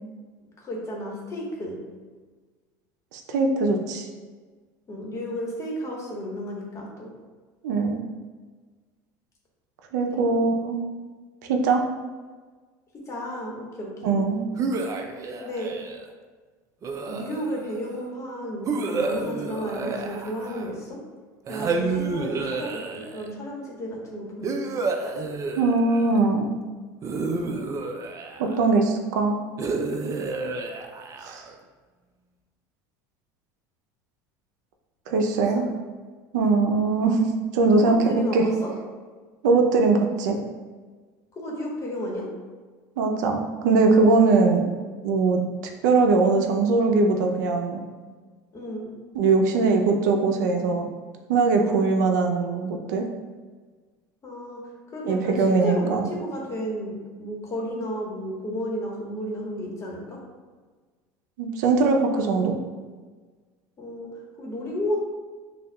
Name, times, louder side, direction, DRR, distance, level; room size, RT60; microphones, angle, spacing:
voice 1, 0.6-1.7 4.9-7.1 10.1-10.4 13.1-14.1 15.4-15.7 17.0-21.0 21.5-24.8 37.7-38.7 41.3-42.3 48.5-49.0 51.6-51.9 54.2-54.6 54.9-60.2 63.8-64.1 64.4-65.0, equal, 35° left, -2 dB, 1.2 m, -33 dB
voice 2, 3.1-4.1 7.6-8.0 9.9-10.9 11.5-11.8 14.0-14.4 25.6-26.5 28.4-29.4 31.3-31.4 35.1-35.7 36.3-38.5 39.4-40.4 43.0-44.6 45.0-45.4 45.8-47.8 49.1-50.9 51.3-53.1 55.1-56.1 61.4-62.6, right 3 dB, 85° right, 3 dB, 0.5 m, -21 dB
sound 1, 14.6-16.1 16.8-17.8 18.7-20.9 21.5-23.3 24.4-26.2 27.0-28.7 29.6-31.5, right 3 dB, 35° right, 0.4 m, -30 dB
6.2 x 2.4 x 2.3 m, 1.4 s
supercardioid pair, 95°, 9 cm